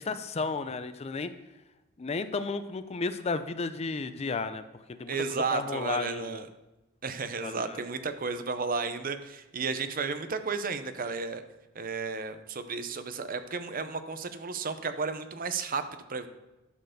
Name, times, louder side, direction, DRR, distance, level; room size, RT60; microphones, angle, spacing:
voice 1, 0.0-1.3 2.0-5.2 5.5-6.4 7.4-7.9, left 4 dB, 30° left, 11 dB, 0.4 m, -33 dB
voice 2, 5.1-6.5 7.0-11.4 11.7-15.8 16.1-16.3, right 4 dB, 40° right, 10 dB, 0.7 m, -33 dB
11.0 x 4.6 x 6.6 m, 1.0 s
head